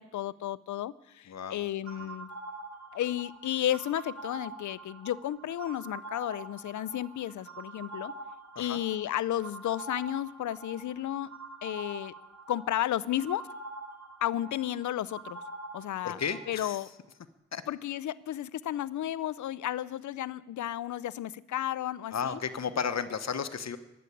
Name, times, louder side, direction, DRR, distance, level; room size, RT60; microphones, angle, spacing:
voice 1, 0.0-2.3 2.9-8.1 8.6-11.3 11.6-12.1 12.5-13.4 14.2-15.4 15.7-16.2 16.5-16.9 17.7-22.4, left 12 dB, 80° left, 20 dB, 0.5 m, -33 dB
voice 2, 1.3-1.6 2.0-2.1 8.5-8.8 16.0-16.8 17.5-17.6 22.1-23.8, left 6 dB, 60° left, 12 dB, 1.0 m, -33 dB
sound 1, 1.9-16.6, right 2 dB, 70° right, 2.2 m, -45 dB
14.5 x 8.1 x 9.7 m, 0.98 s
cardioid pair, 45°, 29 cm